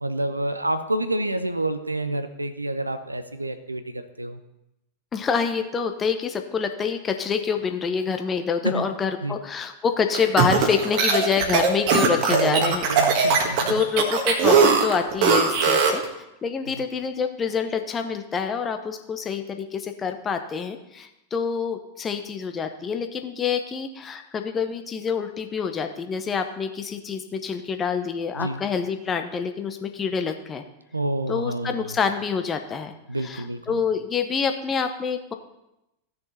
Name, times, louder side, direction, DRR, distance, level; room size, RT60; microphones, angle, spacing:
voice 1, 0.0-4.4 8.6-8.9 9.2-9.4 12.3-13.7 28.4-28.6 30.9-31.9 33.1-33.8, right 1 dB, 85° right, 10 dB, 0.7 m, -28 dB
voice 2, 5.1-12.9 13.2-13.4 13.7-16.0 16.4-30.6 31.3-33.0 33.2-35.3, left 6 dB, 20° left, 7 dB, 1.0 m, -26 dB
sound 1, 10.1-16.1, right 5 dB, 45° right, 1.6 m, -20 dB
15.0 x 6.7 x 4.3 m, 0.89 s
figure-of-eight pair, 90°, 0 cm